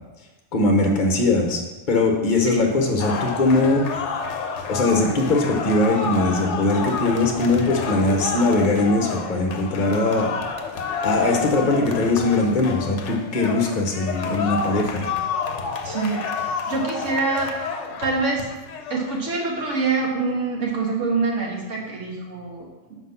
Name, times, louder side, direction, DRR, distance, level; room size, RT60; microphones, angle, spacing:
voice 1, 0.5-1.6 1.9-3.9 4.7-10.3 11.0-15.1, left 2 dB, 40° left, 2 dB, 1.0 m, -21 dB
sound 1, 3.0-19.3, left 5 dB, 70° left, 1.0 m, -29 dB
voice 2, 15.8-17.5 18.0-18.5 18.9-23.0, right 3 dB, 80° right, -2 dB, 1.7 m, -25 dB
5.9 x 5.0 x 5.7 m, 1.2 s
omnidirectional pair, 1.3 m